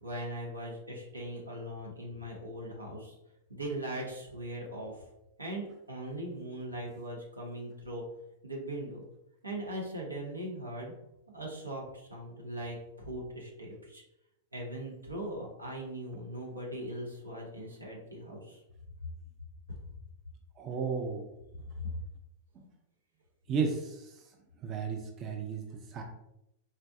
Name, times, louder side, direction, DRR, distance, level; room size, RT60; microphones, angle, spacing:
voice 1, 0.0-3.1 3.5-5.0 5.4-8.0 8.4-9.0 9.4-10.9 11.3-14.0 14.5-18.6 21.6-21.7, right 1 dB, 85° right, -2 dB, 0.8 m, -40 dB
voice 2, 20.6-21.3 22.6-22.7 23.5-24.1 24.6-26.0, right 5 dB, 30° right, 2 dB, 0.5 m, -34 dB
3.9 x 2.1 x 2.7 m, 0.85 s
figure-of-eight pair, 95°, 0 cm